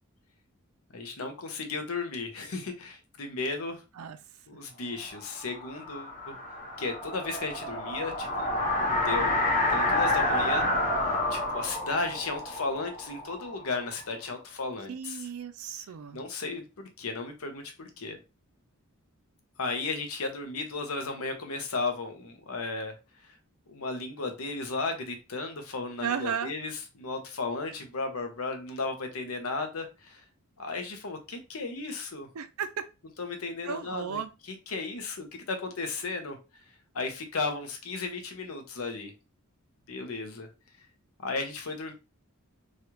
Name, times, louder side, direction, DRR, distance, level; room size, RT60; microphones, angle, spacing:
voice 1, 0.9-3.8 4.5-6.4 6.8-8.5 9.0-9.4 9.7-10.7 11.0-15.3 16.1-18.2 19.6-23.0 23.7-30.2 30.6-32.3 33.2-36.4 36.9-39.1 39.9-40.5 41.2-41.9, left 3 dB, 75° left, 0.8 m, -35 dB
sound 1, 5.3-14.0, left 1 dB, 35° left, 0.9 m, -29 dB
voice 2, 14.9-16.2 26.0-26.5 32.4-32.9 33.7-34.3, right 7 dB, 80° right, 0.4 m, -34 dB
3.1 x 2.3 x 3.0 m
head